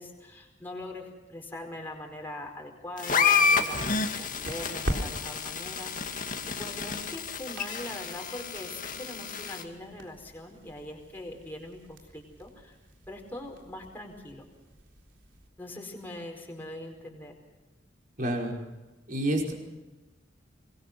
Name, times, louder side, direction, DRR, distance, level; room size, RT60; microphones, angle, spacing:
voice 1, 0.0-12.8 13.1-14.4 15.6-17.3, left 1 dB, 10° left, 0 dB, 4.8 m, -42 dB
sound 1, 3.0-9.6, left 5 dB, 45° left, 2.3 m, -29 dB
sound 2, 3.1-15.5, right 1 dB, 80° right, 3.8 m, -43 dB
voice 2, 18.2-18.6 19.1-19.5, right 1 dB, 45° right, 1 dB, 5.2 m, -28 dB
24.0 x 21.0 x 6.1 m, 1.1 s
head